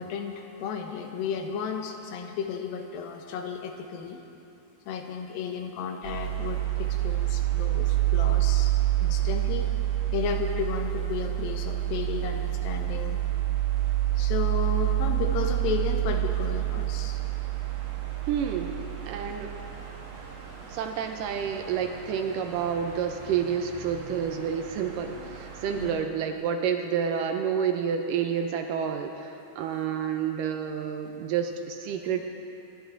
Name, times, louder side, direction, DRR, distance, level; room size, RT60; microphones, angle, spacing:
voice 1, 0.0-4.2 4.9-8.7 9.0-9.7 10.1-13.2 14.2-17.2 25.8-26.0, left 6 dB, 80° left, 4 dB, 2.7 m, -33 dB
sound 1, 6.0-25.9, right 14 dB, 60° right, 2.6 m, -29 dB
voice 2, 18.3-18.8 19.1-19.6 20.7-32.3, right 7 dB, 75° right, 5 dB, 2.2 m, -29 dB
26.5 x 11.5 x 3.9 m, 2.9 s
omnidirectional pair, 4.2 m